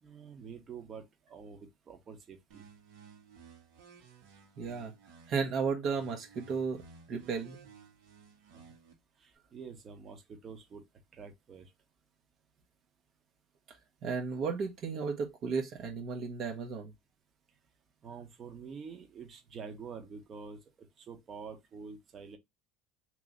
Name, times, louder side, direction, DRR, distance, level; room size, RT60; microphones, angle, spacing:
voice 1, 0.0-2.6 9.2-10.8 11.1-11.7 18.0-20.6 21.0-22.4, right 5 dB, 35° right, 1.1 m, -47 dB
sound 1, 2.5-5.5 5.9-8.9, right 6 dB, 80° right, 1.6 m, -56 dB
voice 2, 4.6-4.9 5.3-6.8 7.1-7.6 14.0-16.9, right 5 dB, 50° right, 1.0 m, -34 dB
3.1 x 3.0 x 3.8 m
supercardioid pair, 115°, 0 cm